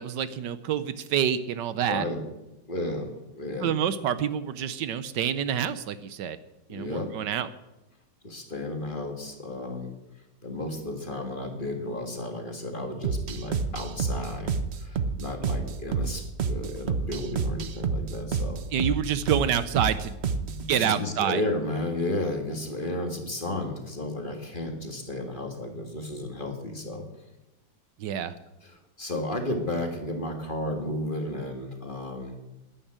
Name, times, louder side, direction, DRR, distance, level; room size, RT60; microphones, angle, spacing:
voice 1, 0.0-2.0 3.6-6.4 6.7-7.5 18.7-20.1 20.7-21.4 28.0-28.3, right 9 dB, 75° right, 13 dB, 1.4 m, -27 dB
voice 2, 1.9-2.2 2.7-3.7 6.7-7.1 8.2-9.9 10.4-14.5 14.8-18.6 20.4-27.1 28.6-32.4, left 1 dB, 30° left, 4 dB, 1.9 m, -33 dB
sound 1, 13.0-20.6, right 5 dB, 50° right, 0.8 m, -29 dB
12.5 x 10.0 x 8.8 m, 0.97 s
omnidirectional pair, 1.9 m